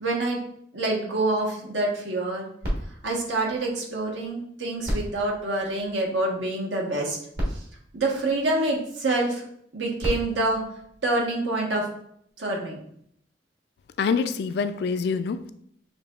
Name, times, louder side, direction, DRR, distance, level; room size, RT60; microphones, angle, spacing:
voice 1, 0.0-0.4 0.7-2.5 3.0-7.2 7.9-9.4 9.7-10.6 11.0-11.8 12.4-12.8, right 2 dB, 85° right, -1 dB, 1.2 m, -26 dB
sound 1, 2.6-4.3 4.8-6.4 7.1-7.2 7.3-8.9 9.7-11.6 12.3-12.4, equal, 60° right, 1.2 m, -34 dB
voice 2, 14.0-15.5, left 5 dB, 60° left, 11 dB, 0.3 m, -26 dB
6.6 x 2.8 x 2.4 m, 0.69 s
head